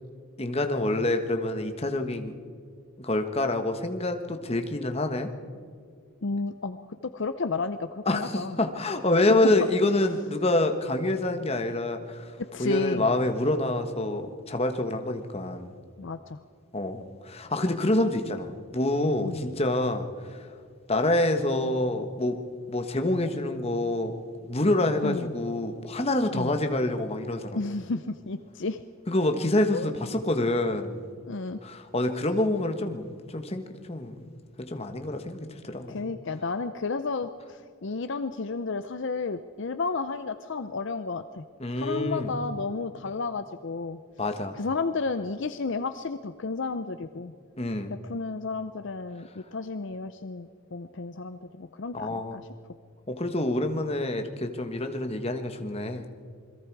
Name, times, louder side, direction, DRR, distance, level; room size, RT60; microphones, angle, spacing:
voice 1, 0.4-2.3 3.0-5.3 8.0-12.3 12.6-15.7 16.7-20.5 20.9-22.4 22.7-24.1 24.5-27.6 29.1-31.0 31.6-34.2 34.6-36.1 41.6-42.3 44.2-44.6 47.6-47.9 51.9-52.4 53.1-56.0, left 1 dB, 30° left, 6 dB, 1.3 m, -27 dB
voice 2, 6.2-6.8 7.1-8.6 9.3-9.4 12.4-13.0 16.0-16.4 19.2-19.4 25.0-25.3 26.3-26.5 27.5-28.8 29.7-29.9 31.2-31.6 35.9-41.4 41.7-44.0 44.5-47.3 48.0-52.4, left 3 dB, 55° left, 10 dB, 0.6 m, -32 dB
28.0 x 22.0 x 4.7 m, 2.1 s
head